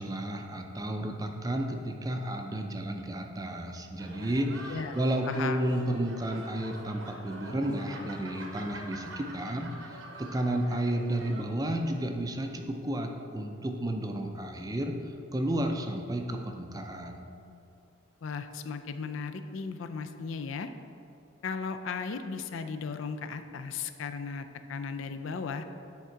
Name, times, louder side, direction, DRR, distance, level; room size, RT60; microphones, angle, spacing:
voice 1, 0.0-17.3, right 1 dB, 20° right, 4 dB, 0.4 m, -32 dB
sound 1, 4.0-11.4, right 1 dB, 75° right, 0.9 m, -46 dB
voice 2, 5.3-5.6 18.2-20.7 21.4-25.6, left 5 dB, 75° left, 8 dB, 0.4 m, -36 dB
9.3 x 3.7 x 4.5 m, 2.6 s
head